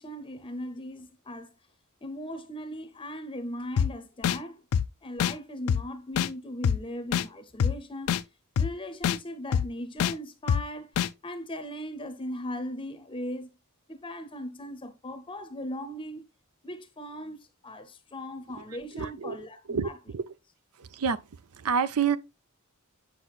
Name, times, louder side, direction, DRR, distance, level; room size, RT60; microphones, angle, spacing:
voice 1, 0.0-1.5 2.0-4.6 5.0-8.2 8.6-10.9 11.2-13.5 13.9-16.2 16.6-17.4 17.6-20.0, equal, 25° left, 0.6 m, -38 dB
sound 1, 3.8-3.9 4.2-4.4 4.7-4.9 5.2-5.3 5.7-5.8 6.2-6.3 6.6-6.8 7.1-7.3 7.6-7.7 8.1-8.2 8.6-8.7 9.0-9.2 9.5-9.7 10.0-10.1 10.5-10.6 11.0-11.1, left 8 dB, 70° left, 0.4 m, -24 dB
voice 2, 18.9-19.4 19.7-20.3 20.8-21.2 21.6-22.2, right 6 dB, 85° right, 0.5 m, -28 dB
8.2 x 5.7 x 2.4 m
head